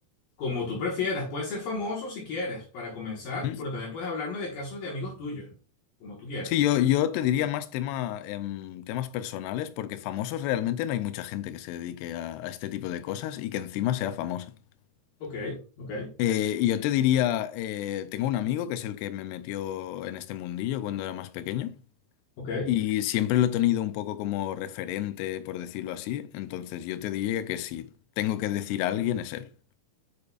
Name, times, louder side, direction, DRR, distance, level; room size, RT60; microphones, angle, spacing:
voice 1, 0.4-5.5 6.0-6.5 15.2-16.1 22.4-22.7, left 3 dB, 65° left, 3.0 m, -33 dB
voice 2, 6.4-14.5 16.2-21.8 22.7-27.9 28.2-29.5, left 12 dB, 90° left, 2.7 m, -29 dB
8.5 x 6.4 x 2.4 m
omnidirectional pair, 4.6 m